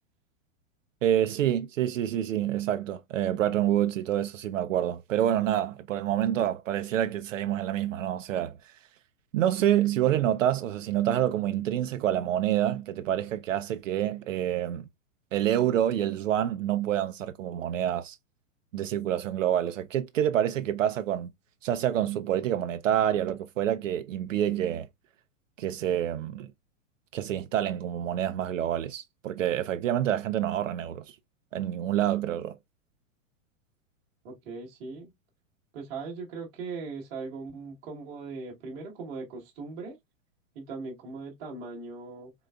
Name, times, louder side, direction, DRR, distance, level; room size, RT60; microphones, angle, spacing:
voice 1, 1.0-8.7 9.3-14.8 15.3-18.2 18.7-21.3 21.6-24.9 25.6-26.5 27.1-31.2 31.5-32.6, right 11 dB, 70° right, 0.6 m, -27 dB
voice 2, 34.2-35.1 35.7-40.0 40.5-42.3, right 4 dB, 20° right, 1.2 m, -39 dB
3.9 x 3.8 x 2.3 m
supercardioid pair, 180°, 40 cm